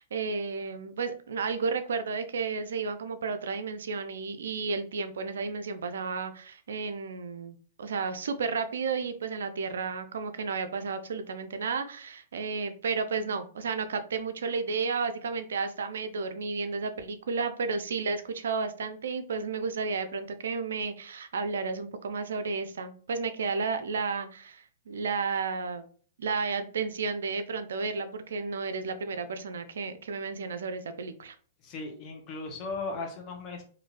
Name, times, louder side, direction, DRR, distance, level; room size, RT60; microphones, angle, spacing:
voice 1, 0.0-25.8 26.2-31.4, right 4 dB, 75° right, 9 dB, 0.4 m, -32 dB
voice 2, 31.6-33.6, left 3 dB, 35° left, 2 dB, 0.9 m, -37 dB
3.0 x 2.6 x 2.4 m, 0.44 s
hypercardioid pair, 115°, 0 cm